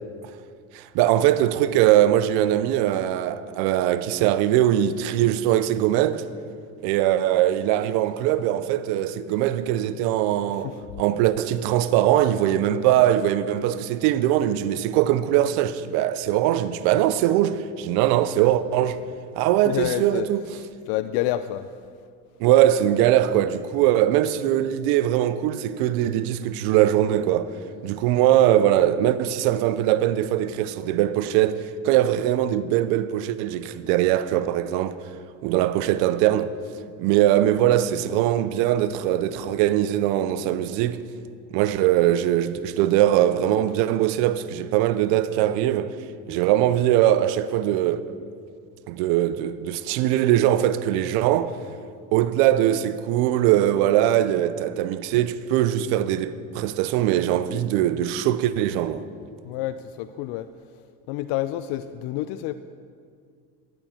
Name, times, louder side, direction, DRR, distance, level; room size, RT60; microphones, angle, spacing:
voice 1, 0.7-6.3 6.8-10.7 11.0-19.0 19.4-20.4 22.4-27.5 27.8-35.0 35.4-36.5 37.0-41.0 41.5-45.9 46.3-48.0 48.9-51.6 52.1-59.1, right 12 dB, 75° right, 0.7 m, -21 dB
voice 2, 19.6-20.3 20.9-21.7 59.4-60.5 61.1-62.5, left 14 dB, 70° left, 0.5 m, -28 dB
11.0 x 10.5 x 4.3 m
supercardioid pair, 95°, 38 cm